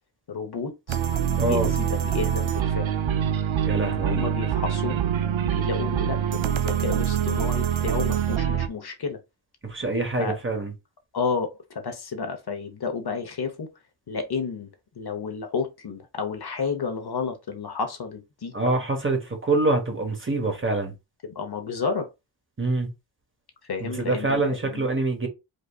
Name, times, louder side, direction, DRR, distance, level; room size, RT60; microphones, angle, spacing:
voice 1, 0.3-1.0 1.3-2.9 4.0-5.0 5.4-9.2 10.2-10.4 11.1-13.7 14.1-14.7 15.0-18.5 21.2-22.1 23.6-24.9, left 5 dB, 55° left, 1.0 m, -31 dB
sound 1, 0.9-8.7, right 9 dB, 75° right, 0.7 m, -25 dB
voice 2, 1.3-1.7 3.7-4.3 9.6-10.7 18.5-20.9 22.6-22.9 24.0-25.3, right 2 dB, 25° right, 1.3 m, -25 dB
5.2 x 4.0 x 2.3 m
wide cardioid pair, 130°, 47 cm